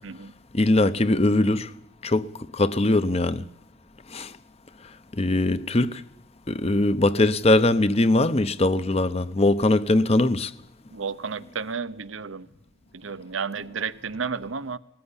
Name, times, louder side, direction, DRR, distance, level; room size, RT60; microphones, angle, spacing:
voice 1, 0.5-1.7 2.0-3.4 4.1-4.3 5.2-6.0 6.5-10.5, left 2 dB, 30° left, 0.9 m, -21 dB
voice 2, 10.9-12.5 12.9-14.8, right 5 dB, 85° right, 0.9 m, -32 dB
19.5 x 14.5 x 9.9 m
head